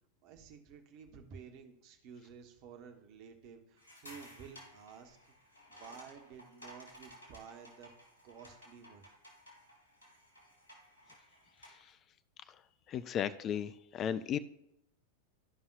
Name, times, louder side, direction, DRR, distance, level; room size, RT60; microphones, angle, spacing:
voice 1, 0.2-5.2 5.7-7.9 8.2-9.0, right 6 dB, 45° right, 5 dB, 1.2 m, -52 dB
sound 1, 3.8-11.9, equal, 75° left, 2.9 m, -56 dB
voice 2, 12.9-14.4, left 9 dB, 30° left, 14 dB, 0.4 m, -35 dB
13.5 x 5.5 x 2.5 m, 0.82 s
figure-of-eight pair, 90°, 0 cm